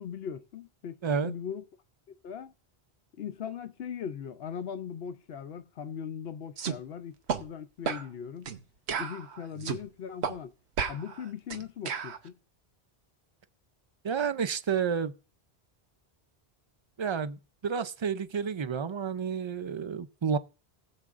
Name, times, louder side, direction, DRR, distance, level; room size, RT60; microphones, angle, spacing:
voice 1, 0.0-0.9 1.2-1.7 2.2-2.5 3.2-7.1 7.4-8.5 9.0-10.5 10.9-12.3, left 7 dB, 70° left, 0.9 m, -39 dB
voice 2, 1.0-1.3 14.0-15.1 17.0-20.4, right 6 dB, 45° right, 0.4 m, -30 dB
sound 1, 6.6-6.8 7.3-7.4 7.9-8.1 8.5-8.6 8.9-9.8 10.2-10.4 10.8-12.2, right 6 dB, 85° right, 1.1 m, -33 dB
19.5 x 7.1 x 2.5 m
omnidirectional pair, 1.1 m